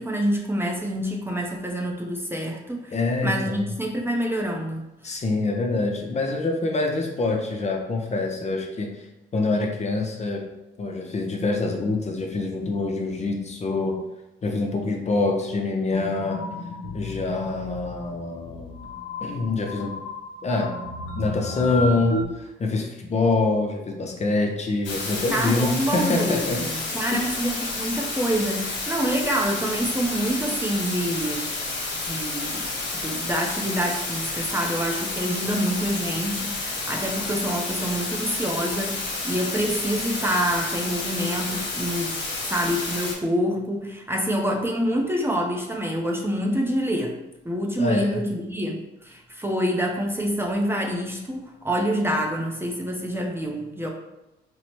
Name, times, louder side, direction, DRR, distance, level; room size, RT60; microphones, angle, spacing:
voice 1, 0.0-4.9 25.3-31.5 31.9-32.7 32.9-42.1 42.5-47.2 47.4-53.9, equal, 10° right, 0 dB, 0.5 m, -26 dB
voice 2, 2.9-3.6 5.0-8.9 9.3-10.4 10.8-14.0 14.4-16.4 16.9-18.9 19.2-20.0 20.4-20.7 21.2-26.6 27.1-27.3 47.8-48.2, left 3 dB, 35° left, 2 dB, 0.5 m, -25 dB
sound 1, 15.9-22.2, left 2 dB, 85° left, 0.5 m, -34 dB
sound 2, 24.8-43.1, left 3 dB, 65° left, 1.1 m, -30 dB
4.2 x 2.0 x 3.0 m, 0.95 s
cardioid pair, 90°, 20 cm